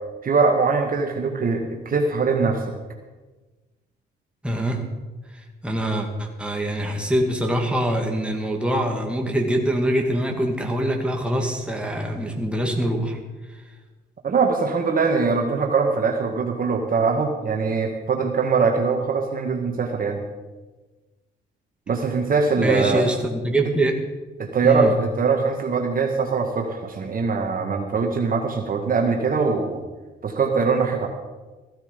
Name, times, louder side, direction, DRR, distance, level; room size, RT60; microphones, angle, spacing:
voice 1, 0.2-2.8 14.2-20.2 21.9-23.0 24.4-29.8 30.2-31.1, right 4 dB, 45° right, 2 dB, 1.7 m, -22 dB
voice 2, 4.4-4.8 5.6-13.2 22.6-24.0 24.6-24.9, right 1 dB, 5° right, 1 dB, 2.3 m, -24 dB
15.5 x 12.5 x 5.3 m, 1.2 s
cardioid pair, 90°, 20 cm